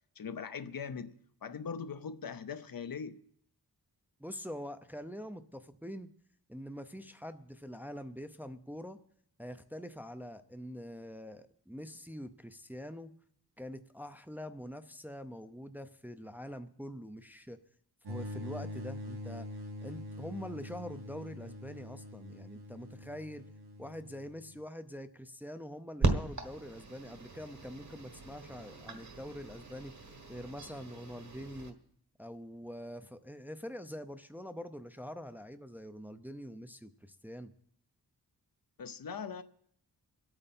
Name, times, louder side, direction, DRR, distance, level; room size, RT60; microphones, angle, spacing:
voice 1, 0.2-3.2 38.8-39.4, left 6 dB, 60° left, 0.7 m, -41 dB
voice 2, 4.2-6.1 6.5-9.0 9.4-13.1 13.6-17.6 18.1-19.5 19.8-23.4 23.8-29.9 30.3-31.8 32.2-37.5, equal, 5° right, 0.5 m, -45 dB
sound 1, 18.0-24.6, left 1 dB, 80° right, 2.1 m, -44 dB
sound 2, 26.0-31.7, right 3 dB, 45° right, 1.5 m, -37 dB
25.0 x 8.9 x 4.3 m
wide cardioid pair, 120°, 39 cm